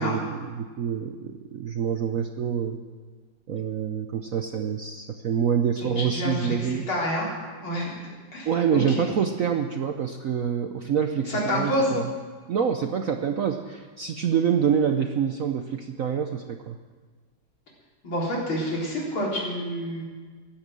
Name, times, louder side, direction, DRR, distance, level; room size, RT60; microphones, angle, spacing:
voice 1, 0.0-2.8 3.5-6.9 8.4-12.1 12.5-16.8, right 7 dB, 65° right, 6 dB, 0.8 m, -26 dB
voice 2, 5.8-7.3 7.6-7.9 8.3-9.1 11.3-11.9 18.0-20.0, equal, 80° left, -4 dB, 4.8 m, -28 dB
14.5 x 12.0 x 7.6 m, 1.5 s
omnidirectional pair, 2.2 m